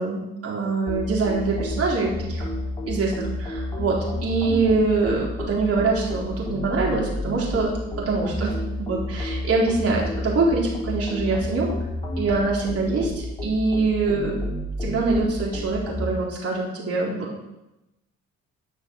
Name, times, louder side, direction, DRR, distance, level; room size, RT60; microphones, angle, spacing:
voice 1, 0.0-2.5 2.9-7.7 8.1-11.7 12.2-14.4 14.8-17.4, right 3 dB, 50° right, -3 dB, 4.2 m, -24 dB
sound 1, 0.9-16.1, left 1 dB, 20° left, 3.8 m, -31 dB
11.5 x 6.4 x 6.6 m, 0.93 s
cardioid pair, 90°, 30 cm